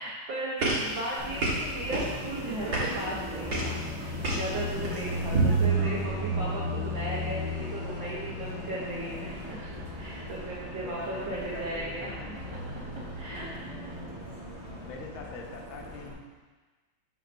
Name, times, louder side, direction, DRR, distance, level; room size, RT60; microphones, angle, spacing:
voice 1, 0.0-12.6 13.1-13.5, right 1 dB, 70° right, -7 dB, 1.8 m, -36 dB
sound 1, 0.6-5.7, right 1 dB, 50° right, 1.9 m, -31 dB
Car passing by, 1.2-16.1, right 1 dB, 30° right, 0.6 m, -35 dB
voice 2, 10.8-12.4 14.0-14.1 14.6-16.3, left 4 dB, 75° left, 1 dB, 1.5 m, -44 dB
7.3 x 6.4 x 2.6 m, 1.3 s
omnidirectional pair, 2.2 m